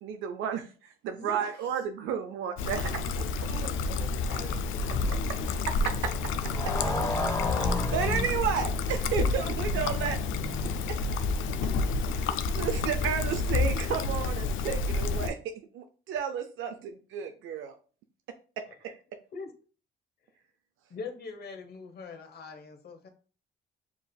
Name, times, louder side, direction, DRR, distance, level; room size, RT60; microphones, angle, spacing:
voice 1, 0.0-2.8 5.7-5.9 7.6-10.2 12.1-15.4 15.7-17.7 18.8-18.9, right 7 dB, 80° right, 7 dB, 0.5 m, -32 dB
voice 2, 1.1-1.8 2.6-3.2 3.5-5.2, right 1 dB, 60° right, 0 dB, 2.0 m, -46 dB
Trickle dribble, 2.6-15.3, left 4 dB, 85° left, 0.4 m, -29 dB
Motorcycle, 3.6-11.5, left 2 dB, 15° left, 1.0 m, -36 dB
voice 3, 20.9-23.1, left 4 dB, 55° left, 5 dB, 0.9 m, -42 dB
7.2 x 2.5 x 2.2 m, 0.39 s
cardioid pair, 90°, 20 cm